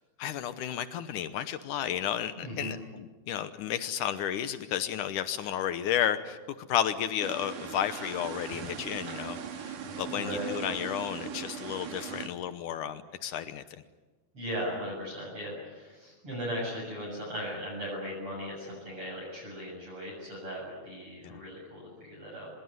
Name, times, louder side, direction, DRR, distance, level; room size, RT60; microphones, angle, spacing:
voice 1, 0.2-13.8 21.2-21.4, left 10 dB, 75° left, 12 dB, 1.9 m, -32 dB
voice 2, 2.4-2.7 10.1-10.5 14.3-22.5, equal, 30° right, -4 dB, 7.9 m, -38 dB
sound 1, 7.2-12.3, right 7 dB, 55° right, 3.3 m, -39 dB
24.5 x 21.5 x 9.6 m, 1.2 s
omnidirectional pair, 4.8 m